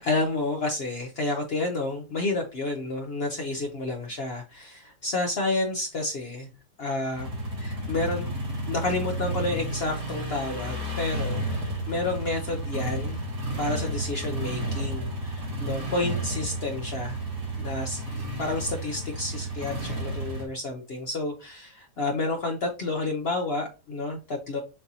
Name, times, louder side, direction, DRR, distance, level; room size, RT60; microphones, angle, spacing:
voice 1, 0.0-6.5 6.8-7.3 7.6-8.3 8.7-13.2 13.6-17.2 17.6-24.6, left 2 dB, 50° left, 2 dB, 0.8 m, -30 dB
sound 1, 7.1-20.5, right 1 dB, 85° right, 2.1 m, -32 dB
6.6 x 2.8 x 2.7 m, 0.29 s
omnidirectional pair, 1.6 m